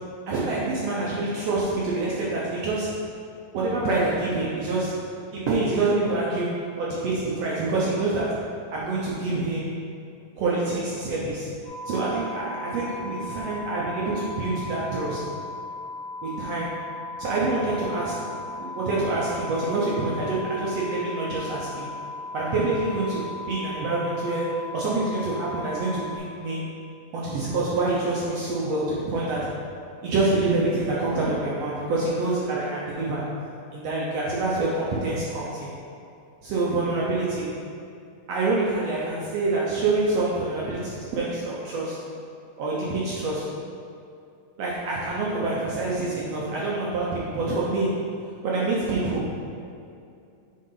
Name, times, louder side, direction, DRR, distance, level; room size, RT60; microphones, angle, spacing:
voice 1, 0.3-3.0 3.5-5.0 5.3-8.4 8.7-9.7 10.4-11.5 11.8-15.3 16.2-16.8 17.2-18.3 18.6-21.9 22.3-26.6 27.1-29.6 30.0-33.3 33.7-35.7 36.4-37.5 38.3-42.0 42.6-43.5 44.6-48.0 48.4-49.3, right 2 dB, 70° right, -6 dB, 1.6 m, -26 dB
sound 1, 11.6-26.2, left 3 dB, 70° left, 0.5 m, -37 dB
9.5 x 3.7 x 3.9 m, 2.5 s
omnidirectional pair, 3.8 m